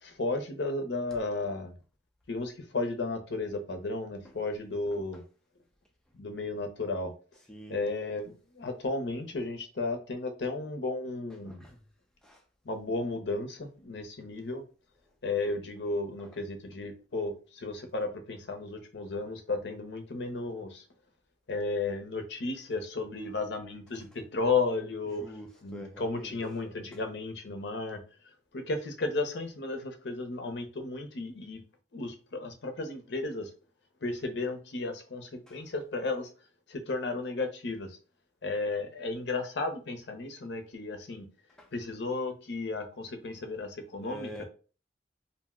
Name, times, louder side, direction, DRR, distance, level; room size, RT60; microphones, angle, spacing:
voice 1, 0.0-1.7 2.3-5.2 6.1-7.1 7.7-11.6 12.6-14.6 15.2-20.8 21.5-25.2 25.6-28.0 28.5-31.6 31.9-33.5 34.0-36.3 36.7-38.0 38.4-41.2 41.7-44.3, left 3 dB, 70° left, 0.6 m, -34 dB
voice 2, 7.5-7.9 11.4-11.8 12.2-12.4 16.2-16.4 25.2-26.4 35.5-35.7 41.6-41.7 44.0-44.4, equal, 5° left, 0.6 m, -45 dB
2.5 x 2.1 x 3.6 m
head